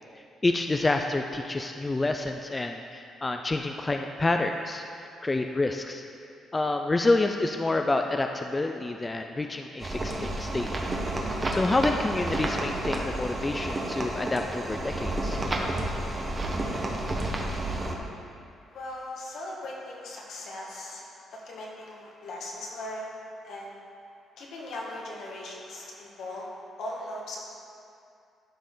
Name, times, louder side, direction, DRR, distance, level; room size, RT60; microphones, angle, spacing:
voice 1, 0.2-4.8 5.2-6.0 6.5-10.7 11.5-15.4, left 2 dB, 20° left, 4 dB, 0.4 m, -28 dB
sound 1, 9.8-18.0, right 1 dB, 30° right, 1.2 m, -30 dB
voice 2, 18.7-21.0 21.3-23.1 23.4-23.7 24.4-26.5 26.8-27.4, left 1 dB, 75° left, -3 dB, 1.8 m, -39 dB
13.5 x 5.2 x 3.9 m, 2.5 s
cardioid pair, 90°, 0 cm